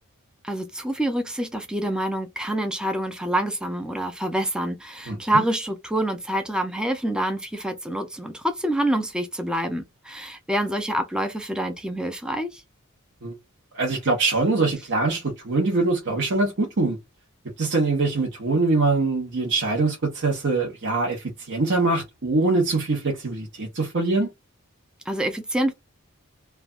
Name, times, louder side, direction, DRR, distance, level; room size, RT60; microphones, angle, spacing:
voice 1, 0.4-12.6 25.1-25.7, right 1 dB, 5° right, 0.4 m, -26 dB
voice 2, 5.1-5.4 13.2-13.3 13.7-17.0 17.6-24.3, right 3 dB, 55° right, 0.9 m, -23 dB
3.2 x 2.3 x 2.3 m
head